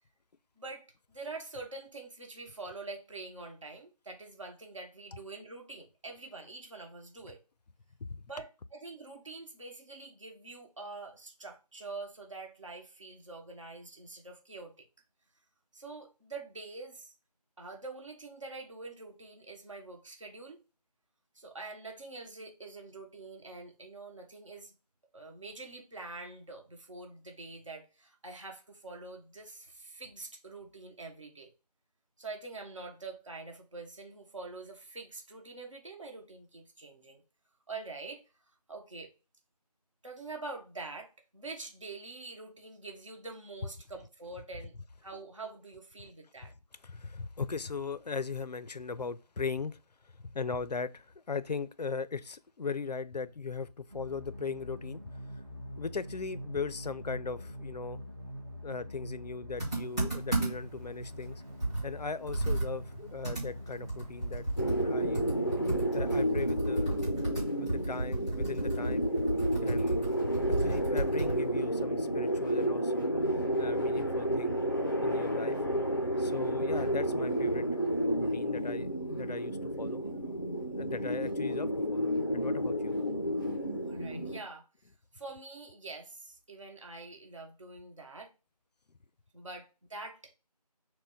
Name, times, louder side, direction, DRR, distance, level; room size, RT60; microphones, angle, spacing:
voice 1, 0.6-7.4 8.3-14.7 15.7-17.1 17.6-20.6 21.3-24.7 25.1-31.5 32.2-37.2 37.7-38.2 38.7-39.1 40.0-44.7 45.0-46.5 83.8-84.7 85.1-88.3 89.3-90.3, right 3 dB, 50° right, 1.3 m, -45 dB
voice 2, 46.8-49.8 50.2-55.0 55.8-58.0 58.6-61.4 61.8-65.2 65.9-66.9 67.6-69.1 69.6-70.1 70.6-73.1 73.6-74.5 75.0-75.6 76.2-77.7 78.0-80.0 80.8-82.9, left 5 dB, 85° left, 0.5 m, -38 dB
sound 1, 53.9-65.4, equal, 35° right, 0.9 m, -44 dB
Computer keyboard, 59.6-60.8 61.2-61.3 61.6-71.5, right 2 dB, 10° right, 1.3 m, -33 dB
sound 2, 64.6-84.4, equal, 30° left, 0.5 m, -31 dB
6.4 x 2.2 x 3.8 m
figure-of-eight pair, 175°, 20 cm